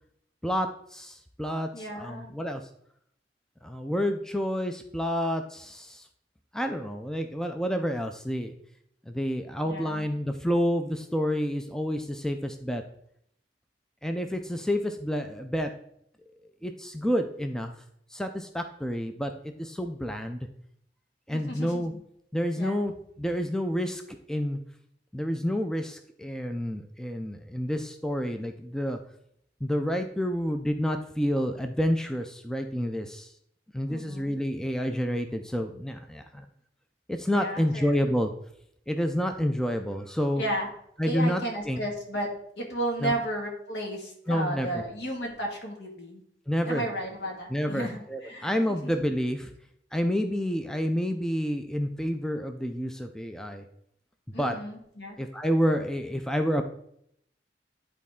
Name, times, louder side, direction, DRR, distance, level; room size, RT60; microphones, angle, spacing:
voice 1, 0.4-2.6 3.6-6.1 6.5-8.5 9.1-12.8 14.0-15.7 16.6-17.7 18.1-20.5 21.3-21.9 22.3-22.9 23.2-24.6 25.1-29.0 29.6-33.3 33.7-36.5 37.1-38.3 38.9-40.4 41.0-41.8 43.0-43.1 44.3-44.8 46.5-46.9 47.5-49.5 49.9-53.6 54.4-54.6 55.2-56.6, equal, 5° left, 5 dB, 0.4 m, -29 dB
voice 2, 1.7-2.4 9.6-10.1 21.3-21.8 22.6-22.8 33.9-34.3 37.3-38.0 40.4-40.7 41.0-46.2 46.6-48.9 54.3-55.2, right 1 dB, 70° left, 0 dB, 2.0 m, -34 dB
11.0 x 4.2 x 3.6 m, 0.71 s
head